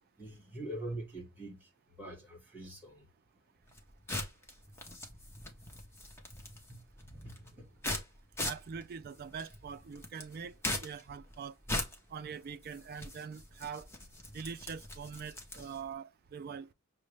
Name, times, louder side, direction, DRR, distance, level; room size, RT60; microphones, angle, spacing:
voice 1, 0.2-1.6 2.0-3.0 6.7-7.6, right 1 dB, 10° right, 1.7 m, -44 dB
sound 1, 3.6-15.9, left 1 dB, 10° left, 0.8 m, -41 dB
voice 2, 8.4-10.5 10.8-11.5 12.1-13.9 14.3-16.7, right 6 dB, 45° right, 0.3 m, -43 dB
6.1 x 2.1 x 3.2 m
head